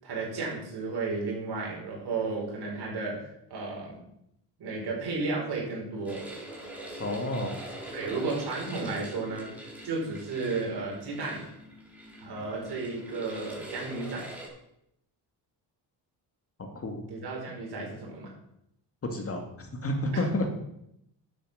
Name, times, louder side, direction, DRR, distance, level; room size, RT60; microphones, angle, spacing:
voice 1, 0.0-4.0 4.6-6.2 7.9-11.4 12.2-14.3 17.1-18.3 20.1-20.2, right 3 dB, 65° right, -2 dB, 5.2 m, -33 dB
sound 1, 6.1-14.5, right 1 dB, 5° right, 4.0 m, -43 dB
voice 2, 7.0-7.6 16.6-17.0 19.0-20.5, left 1 dB, 35° left, 4 dB, 1.9 m, -30 dB
10.0 x 8.2 x 6.4 m, 0.78 s
cardioid pair, 125°, 42 cm